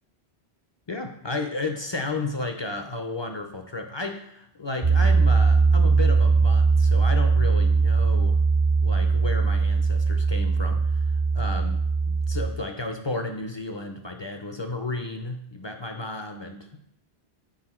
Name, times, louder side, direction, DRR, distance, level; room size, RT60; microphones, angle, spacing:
voice 1, 0.9-8.4 8.8-11.0 11.3-11.8 12.1-16.8, left 2 dB, 40° left, 5 dB, 0.4 m, -33 dB
Piano, 4.8-12.5, right 4 dB, 40° right, 0.4 m, -20 dB
6.3 x 4.7 x 4.2 m, 0.74 s
omnidirectional pair, 1.1 m